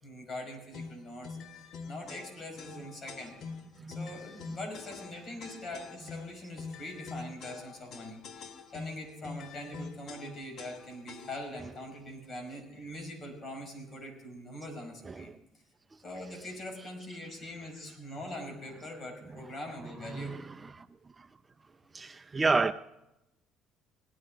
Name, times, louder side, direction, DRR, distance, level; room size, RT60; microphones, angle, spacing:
voice 1, 0.0-1.4 1.9-3.4 3.9-15.3 16.0-20.6, left 1 dB, 40° left, 5.4 m, -43 dB
sound 1, 0.7-11.6, left 5 dB, 60° left, 1.3 m, -45 dB
voice 2, 3.7-4.1 4.4-4.6 15.0-15.4 19.4-19.5 20.0-20.9 21.2-21.3 21.9-22.7, right 4 dB, 25° right, 0.5 m, -32 dB
18.5 x 11.0 x 3.9 m
supercardioid pair, 90°, 0 cm